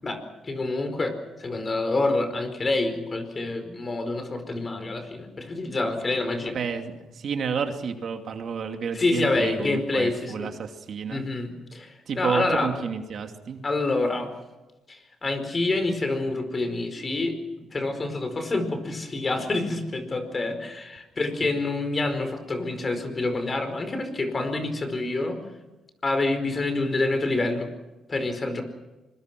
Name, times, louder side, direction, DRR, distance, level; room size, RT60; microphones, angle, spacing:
voice 1, 0.0-1.1 1.4-6.5 8.9-10.5 11.1-12.7 13.6-14.3 14.9-17.4 17.7-25.4 26.0-27.7 28.1-28.6, left 2 dB, 30° left, 8 dB, 4.8 m, -27 dB
voice 2, 6.5-11.2 12.1-13.6, right 6 dB, 60° right, 5 dB, 2.5 m, -30 dB
25.5 x 22.5 x 6.1 m, 1.1 s
cardioid pair, 90°, 0 cm